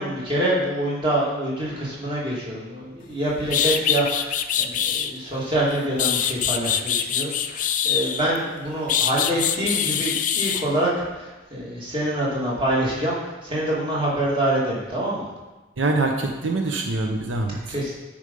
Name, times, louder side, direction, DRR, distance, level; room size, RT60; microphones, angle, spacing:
voice 1, 0.0-15.3 17.7-17.9, right 1 dB, 25° right, -5 dB, 2.2 m, -26 dB
sound 1, 3.1-3.2 3.5-5.1 5.7-8.4 8.9-10.6, left 9 dB, 40° left, 0.4 m, -24 dB
voice 2, 15.8-17.8, right 2 dB, 85° right, 3 dB, 0.8 m, -24 dB
8.4 x 5.2 x 5.4 m, 1.1 s
head